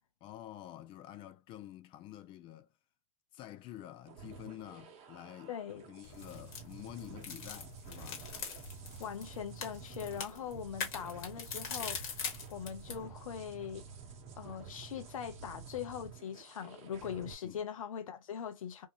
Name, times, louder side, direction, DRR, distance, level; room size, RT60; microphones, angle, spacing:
voice 1, 0.2-2.7 3.3-8.3 17.4-17.6, left 13 dB, 30° left, 0.3 m, -49 dB
sound 1, 4.1-17.3, right 6 dB, 35° right, 0.8 m, -50 dB
voice 2, 5.5-5.9 9.0-13.8 14.4-18.9, left 8 dB, 70° left, 0.8 m, -41 dB
sound 2, 6.0-13.0, left 6 dB, 45° left, 1.3 m, -43 dB
2.7 x 2.3 x 2.7 m
hypercardioid pair, 110°, 18 cm